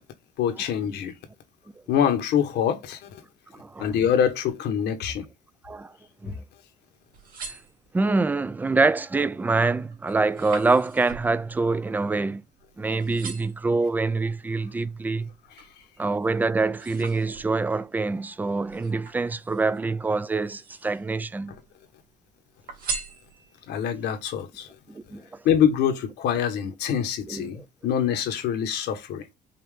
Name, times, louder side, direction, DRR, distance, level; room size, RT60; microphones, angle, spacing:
voice 1, 0.4-1.1 1.9-3.2 3.8-5.2 23.7-24.7 25.4-29.3, left 8 dB, 80° left, 1.3 m, -25 dB
sound 1, 7.0-8.3 8.8-9.2 9.6-12.7 13.0-13.7 14.3-15.8 16.2-17.8 18.7-19.8 20.3-21.1 21.5-22.2 22.7-23.7 24.2-24.3, right 5 dB, 55° right, 2.6 m, -40 dB
voice 2, 7.9-12.4 12.8-15.3 16.0-21.5 24.9-25.2 27.3-27.6, right 3 dB, 10° right, 0.3 m, -25 dB
5.5 x 2.6 x 3.5 m
cardioid pair, 110°, 17 cm